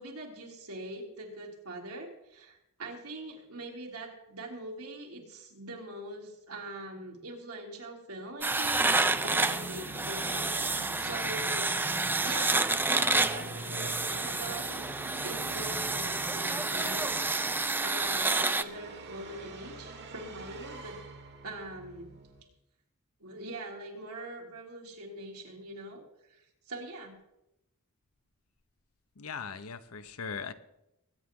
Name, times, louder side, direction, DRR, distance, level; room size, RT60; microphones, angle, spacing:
voice 1, 0.0-10.4 10.7-11.7 12.0-14.8 15.2-17.1 17.4-21.0 21.4-22.2 23.2-26.0 26.7-27.1, right 2 dB, 85° right, -1 dB, 3.2 m, -43 dB
sound 1, 8.4-18.6, right 3 dB, 10° right, 0.4 m, -29 dB
Musical instrument, 8.7-22.4, right 1 dB, 50° right, 1.5 m, -45 dB
voice 2, 29.2-30.5, left 6 dB, 70° left, 11 dB, 0.9 m, -39 dB
22.0 x 9.4 x 3.8 m, 0.85 s
head